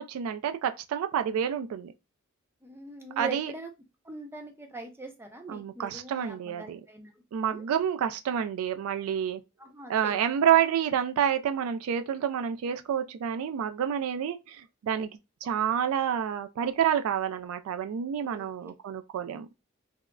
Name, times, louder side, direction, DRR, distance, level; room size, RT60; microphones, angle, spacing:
voice 1, 0.0-1.9 3.2-3.5 5.5-6.8 7.3-9.4 9.9-15.1 15.4-19.5, right 9 dB, 85° right, 0.3 m, -28 dB
voice 2, 2.6-3.7 4.0-7.2 7.5-7.6 9.6-10.1 18.2-18.5, right 2 dB, 10° right, 0.5 m, -42 dB
3.5 x 2.0 x 2.2 m
head